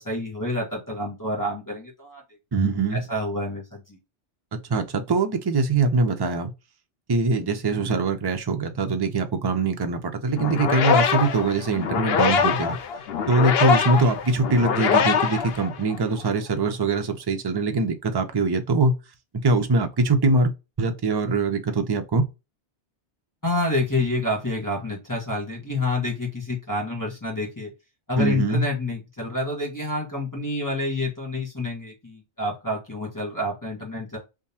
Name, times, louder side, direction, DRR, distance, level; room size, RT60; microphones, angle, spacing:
voice 1, 0.0-2.2 2.9-4.0 23.4-27.7 28.1-34.2, left 2 dB, 20° left, 1.2 m, -28 dB
voice 2, 2.5-3.0 4.5-6.5 7.1-12.8 13.3-18.9 19.3-20.5 20.8-22.2 28.2-28.6, right 3 dB, 35° right, 0.4 m, -23 dB
sound 1, 10.4-16.2, left 6 dB, 65° left, 0.8 m, -23 dB
3.6 x 2.7 x 2.7 m
omnidirectional pair, 1.1 m